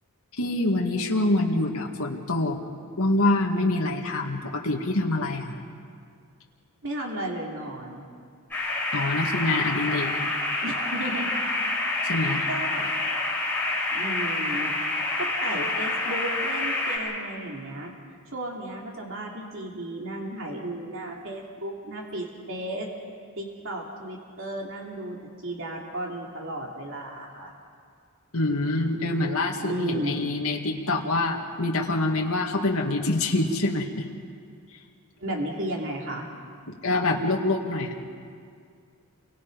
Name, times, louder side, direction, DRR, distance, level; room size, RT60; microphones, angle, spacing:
voice 1, 0.4-2.6 3.0-5.6 8.9-10.1 12.0-12.5 28.3-34.0 36.7-38.0, left 2 dB, 75° left, 0 dB, 2.2 m, -25 dB
voice 2, 6.8-8.0 10.6-11.3 12.0-12.9 13.9-14.8 15.2-17.9 18.3-22.9 23.4-25.2 25.4-27.5 29.5-30.2 35.2-36.3, right 1 dB, 60° right, -1 dB, 3.0 m, -34 dB
sound 1, 8.5-17.0, left 2 dB, 5° left, 8.0 m, -27 dB
29.5 x 24.0 x 5.4 m, 2.2 s
head